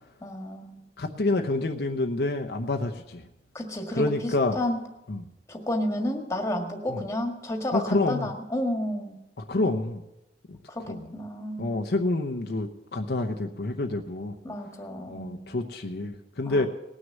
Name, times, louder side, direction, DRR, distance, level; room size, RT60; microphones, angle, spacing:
voice 1, 0.2-0.9 3.5-4.8 5.5-9.2 10.7-11.8 14.4-15.6 16.4-16.7, left 1 dB, 15° left, 3 dB, 1.7 m, -31 dB
voice 2, 1.0-3.2 3.9-4.6 5.1-5.2 6.9-7.0 7.7-8.3 9.5-10.0 10.5-10.6 10.9-11.1 11.6-14.3 15.1-16.7, left 2 dB, 65° left, 3 dB, 0.8 m, -28 dB
19.0 x 6.4 x 7.3 m, 0.92 s
head